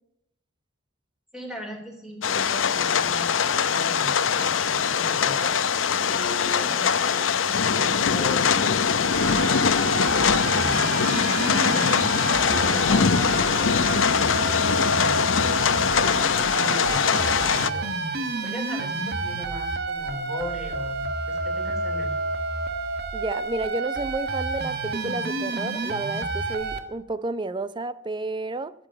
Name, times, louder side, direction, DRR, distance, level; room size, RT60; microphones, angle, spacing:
voice 1, 1.3-22.1, left 1 dB, 5° right, 3.7 m, -39 dB
sound 1, 2.2-17.7, left 6 dB, 80° left, 0.7 m, -22 dB
sound 2, 9.1-26.8, right 3 dB, 55° right, 1.4 m, -29 dB
voice 2, 23.1-28.7, right 2 dB, 25° right, 0.6 m, -31 dB
13.5 x 7.6 x 8.8 m
head